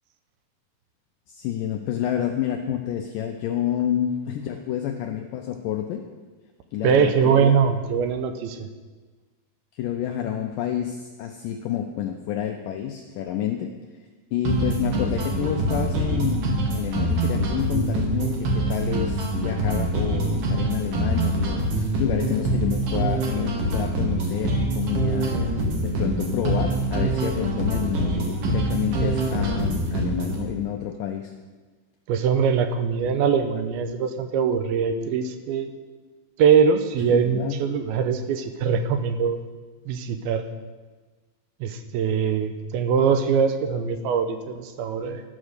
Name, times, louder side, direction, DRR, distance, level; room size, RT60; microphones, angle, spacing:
voice 1, 1.3-6.1 6.7-7.6 9.7-13.7 14.3-25.3 25.8-31.3 37.1-37.6, left 10 dB, 85° left, 4 dB, 1.9 m, -29 dB
voice 2, 6.8-8.7 32.1-35.7 36.4-39.4 39.9-40.5 41.6-45.2, right 6 dB, 80° right, 8 dB, 2.5 m, -22 dB
sound 1, 14.5-30.5, right 2 dB, 65° right, 2.8 m, -25 dB
12.5 x 6.1 x 6.6 m, 1.3 s
omnidirectional pair, 4.6 m